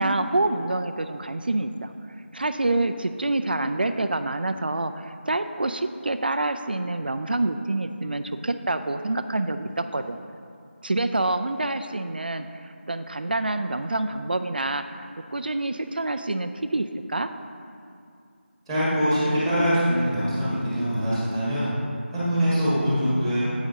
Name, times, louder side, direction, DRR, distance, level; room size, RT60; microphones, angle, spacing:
voice 1, 0.0-1.9 2.3-10.2 10.8-14.9 15.3-17.3, right 2 dB, 50° right, 9 dB, 0.4 m, -27 dB
voice 2, 18.7-21.7 22.1-23.5, equal, ahead, -10 dB, 1.4 m, -23 dB
9.7 x 8.8 x 2.7 m, 2.4 s
figure-of-eight pair, 170°, 7 cm